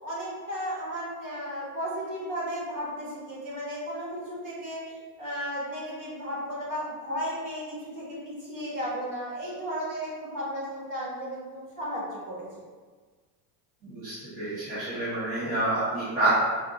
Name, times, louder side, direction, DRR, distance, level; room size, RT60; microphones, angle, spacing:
voice 1, 0.0-12.5, equal, 40° right, -6 dB, 1.5 m, -34 dB
voice 2, 13.8-16.3, right 2 dB, 15° right, -11 dB, 0.8 m, -28 dB
4.7 x 2.5 x 3.6 m, 1.5 s
cardioid pair, 175°, 49 cm